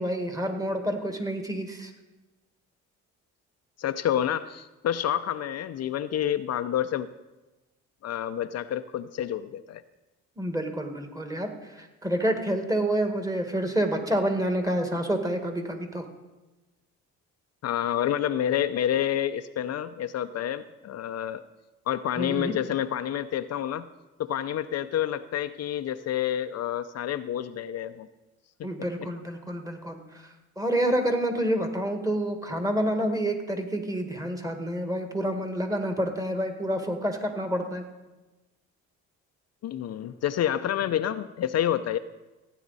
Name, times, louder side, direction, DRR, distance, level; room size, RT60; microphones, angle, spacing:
voice 1, 0.0-1.9 10.4-16.0 22.2-22.5 28.6-30.3 30.6-37.8, right 1 dB, 10° right, 5 dB, 1.7 m, -28 dB
voice 2, 3.8-7.1 8.0-9.8 17.6-21.4 21.9-23.9 24.2-28.1 28.6-28.7 29.0-29.1 39.6-42.0, left 10 dB, 55° left, 10 dB, 0.5 m, -28 dB
15.5 x 9.2 x 4.1 m, 1.1 s
cardioid pair, 90°, 30 cm